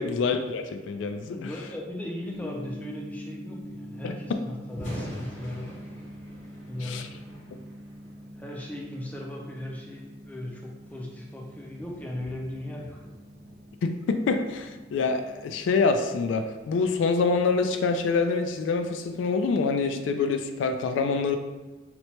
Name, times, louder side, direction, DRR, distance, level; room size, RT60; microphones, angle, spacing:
voice 1, 0.0-1.5 4.0-4.1 6.8-7.1 13.8-21.4, left 4 dB, 80° left, 7 dB, 0.3 m, -26 dB
voice 2, 1.3-5.9 6.7-7.2 8.2-13.1, left 1 dB, 10° left, -1 dB, 0.4 m, -37 dB
Gong, 2.3-19.5, equal, 55° right, 0.6 m, -45 dB
Thunder, 4.6-18.8, equal, 40° left, 0.8 m, -47 dB
4.2 x 2.2 x 2.8 m, 1.2 s
head